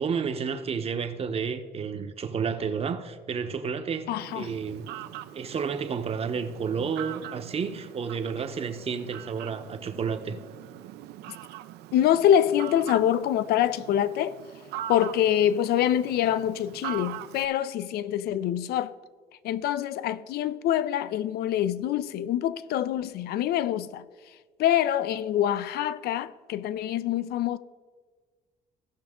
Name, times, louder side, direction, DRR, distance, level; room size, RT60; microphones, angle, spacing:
voice 1, 0.0-4.1 4.3-4.9 5.3-10.4, right 6 dB, 35° right, 0.8 m, -31 dB
voice 2, 4.1-4.5 11.9-14.4 14.9-18.9 19.4-24.0 24.6-27.6, left 11 dB, 70° left, 0.5 m, -25 dB
Fowl, 4.2-17.5, right 13 dB, 75° right, 0.4 m, -42 dB
16.5 x 5.8 x 3.6 m
cardioid pair, 110°, 17 cm